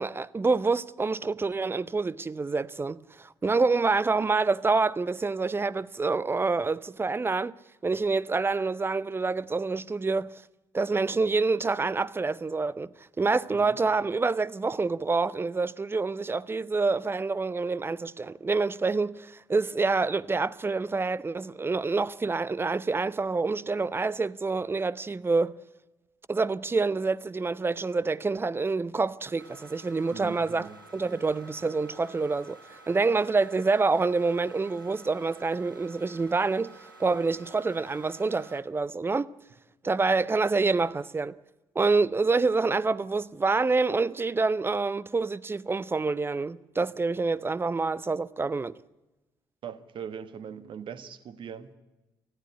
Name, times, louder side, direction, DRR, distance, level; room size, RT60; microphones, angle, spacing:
voice 1, 0.0-7.5 7.8-10.3 10.7-12.9 13.2-25.6 26.3-32.6 32.9-36.7 37.0-39.3 39.8-41.3 41.8-48.8, right 3 dB, 20° right, 0.7 m, -27 dB
sound 1, 29.4-38.6, right 2 dB, 85° right, 1.3 m, -51 dB
voice 2, 30.1-30.8 49.6-51.7, right 7 dB, 50° right, 1.4 m, -41 dB
20.0 x 14.5 x 9.7 m
figure-of-eight pair, 45°, 11 cm